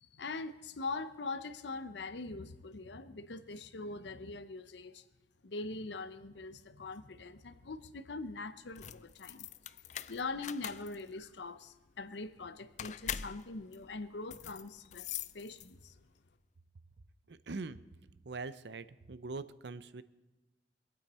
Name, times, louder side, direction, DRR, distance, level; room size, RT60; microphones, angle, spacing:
voice 1, 0.0-5.0 5.4-9.5 10.1-15.1 15.3-15.9, left 3 dB, 75° left, 12 dB, 0.8 m, -42 dB
sound 1, 8.6-16.0, left 9 dB, 40° left, 0.4 m, -44 dB
voice 2, 17.3-17.8 18.2-20.0, right 3 dB, 70° right, 14 dB, 0.6 m, -42 dB
24.5 x 9.1 x 4.3 m, 1.1 s
head